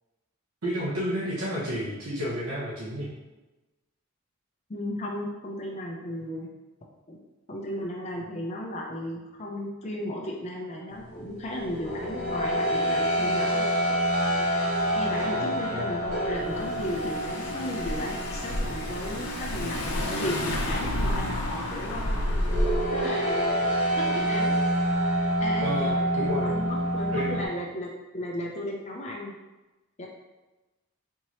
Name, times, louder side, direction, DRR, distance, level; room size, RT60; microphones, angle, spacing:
voice 1, 0.6-3.1 15.2-16.0 25.6-26.6 27.1-27.3, equal, 90° right, -7 dB, 0.9 m, -31 dB
voice 2, 4.7-6.5 7.1-7.2 7.5-13.6 14.9-22.2 22.9-23.7 24.0-24.5 25.4-29.4 30.0-30.1, left 1 dB, 30° left, -2 dB, 0.5 m, -35 dB
sound 1, 11.1-27.5, equal, 40° right, 1.3 m, -28 dB
Car / Engine, 16.0-23.0, left 1 dB, 85° left, 0.6 m, -30 dB
4.4 x 2.8 x 3.0 m, 1.1 s
head